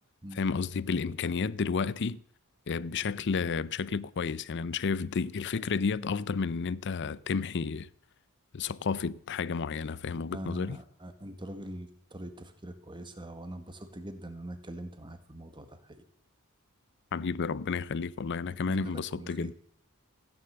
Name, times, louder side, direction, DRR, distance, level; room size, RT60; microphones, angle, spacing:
voice 1, 0.3-2.2 2.7-7.9 8.5-10.8 17.1-19.5, left 5 dB, 55° left, 0.5 m, -31 dB
voice 2, 10.3-16.0 18.7-19.5, right 1 dB, 20° right, 1.6 m, -42 dB
15.5 x 10.0 x 6.8 m
head